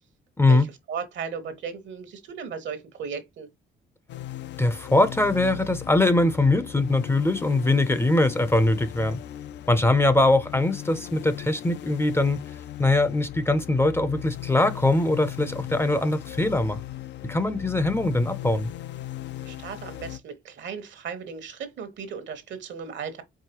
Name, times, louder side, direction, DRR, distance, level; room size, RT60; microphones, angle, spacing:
voice 1, 0.5-3.5 19.4-23.2, right 6 dB, 65° right, 1.1 m, -36 dB
sound 1, 4.1-20.2, left 13 dB, 65° left, 0.4 m, -38 dB
voice 2, 4.6-9.2 9.7-12.4 12.8-16.8 17.3-18.7, left 2 dB, 10° left, 0.5 m, -22 dB
4.7 x 3.0 x 2.9 m
cardioid pair, 90°, 20 cm